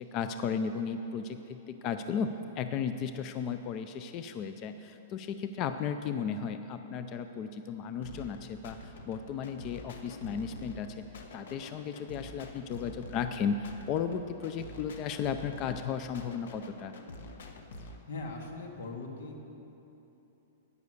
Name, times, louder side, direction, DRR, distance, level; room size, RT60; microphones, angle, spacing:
voice 1, 0.0-11.0 11.3-16.9, left 6 dB, 25° left, 9 dB, 0.3 m, -35 dB
sound 1, 8.0-18.0, left 2 dB, 65° left, 1.1 m, -47 dB
voice 2, 18.1-19.6, left 3 dB, 85° left, 2 dB, 2.0 m, -40 dB
12.0 x 9.7 x 6.5 m, 3.0 s
supercardioid pair, 175°, 0 cm